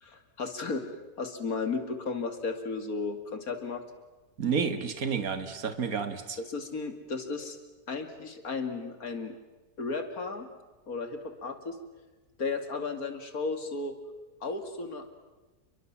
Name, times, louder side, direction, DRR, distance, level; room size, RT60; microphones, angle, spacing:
voice 1, 0.0-0.8 1.2-3.8 6.5-7.6 7.9-9.4 9.8-10.5 10.9-11.8 12.4-14.0 14.4-15.1, left 4 dB, 70° left, 8 dB, 2.9 m, -34 dB
voice 2, 4.4-6.4, right 6 dB, 65° right, 9 dB, 2.2 m, -30 dB
29.0 x 22.5 x 7.3 m, 1.2 s
omnidirectional pair, 1.6 m